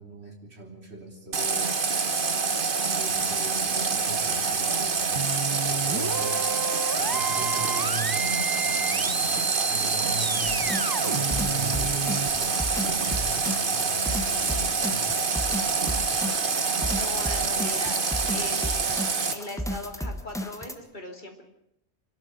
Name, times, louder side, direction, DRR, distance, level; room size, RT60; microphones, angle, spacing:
voice 1, 0.0-1.7 2.8-5.3 5.7-6.4 7.0-10.7 11.0-15.2, right 2 dB, 70° right, 1 dB, 4.4 m, -40 dB
Water tap faucet, 1.3-19.3, right 4 dB, 50° right, 1.5 m, -26 dB
sound 1, 5.2-12.3, right 4 dB, 20° right, 0.9 m, -32 dB
sound 2, 10.5-20.7, equal, 5° left, 1.5 m, -34 dB
voice 2, 16.9-21.4, left 1 dB, 45° left, 3 dB, 3.3 m, -40 dB
26.5 x 12.0 x 9.8 m, 0.78 s
omnidirectional pair, 1.2 m